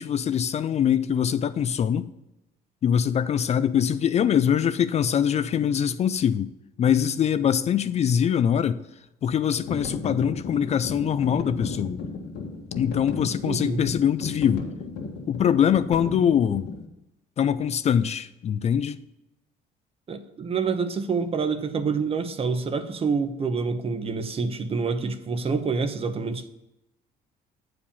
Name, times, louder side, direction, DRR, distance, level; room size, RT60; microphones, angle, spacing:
voice 1, 0.0-2.1 2.8-6.5 6.8-8.8 9.2-12.0 12.8-14.7 15.3-16.7 17.4-19.0, left 8 dB, 40° left, 0.4 m, -23 dB
sound 1, 9.5-16.8, left 4 dB, 90° left, 1.7 m, -35 dB
voice 2, 13.4-13.8 20.1-26.5, right 5 dB, 35° right, 0.9 m, -27 dB
8.5 x 4.9 x 7.0 m
cardioid pair, 110°, 17 cm